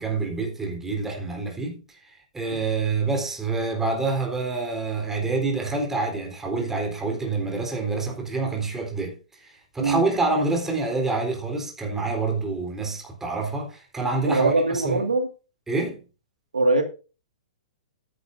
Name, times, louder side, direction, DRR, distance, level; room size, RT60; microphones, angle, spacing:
voice 1, 0.0-1.8 2.0-15.0 15.7-16.0, right 3 dB, 10° right, 3.8 m, -27 dB
voice 2, 14.2-15.3 16.5-16.8, right 2 dB, 90° right, 2.0 m, -22 dB
13.5 x 10.0 x 2.6 m
hypercardioid pair, 120°, 4 cm